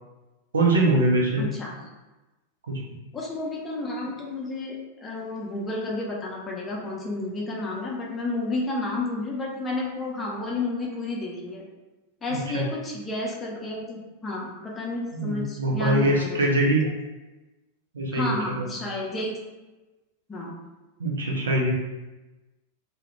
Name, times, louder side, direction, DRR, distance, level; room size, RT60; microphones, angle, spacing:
voice 1, 0.5-1.4 2.7-2.8 12.3-12.6 15.1-16.8 17.9-18.7 21.0-21.7, right 1 dB, 70° right, -2 dB, 0.5 m, -23 dB
voice 2, 1.4-1.7 3.1-11.6 12.2-16.7 18.1-19.3 20.3-20.5, left 2 dB, 20° left, -3 dB, 0.6 m, -31 dB
2.3 x 2.1 x 3.1 m, 1.1 s
figure-of-eight pair, 90°, 0 cm